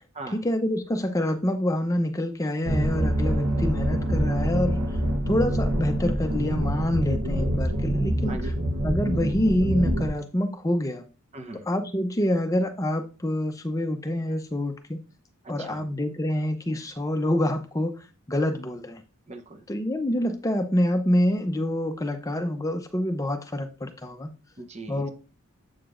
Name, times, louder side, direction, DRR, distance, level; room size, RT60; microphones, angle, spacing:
voice 1, 0.3-4.8 5.3-8.4 8.8-11.0 11.7-15.0 15.5-17.9 18.3-19.0 19.7-24.3 24.9-25.1, left 1 dB, 15° left, 7 dB, 0.5 m, -26 dB
sound 1, 2.6-10.1, right 1 dB, 80° right, 0.9 m, -25 dB
voice 2, 8.3-8.6 11.3-11.7 15.4-15.8 19.3-19.6 24.6-25.1, right 2 dB, 30° right, 7 dB, 0.8 m, -40 dB
7.8 x 6.5 x 2.5 m, 0.33 s
head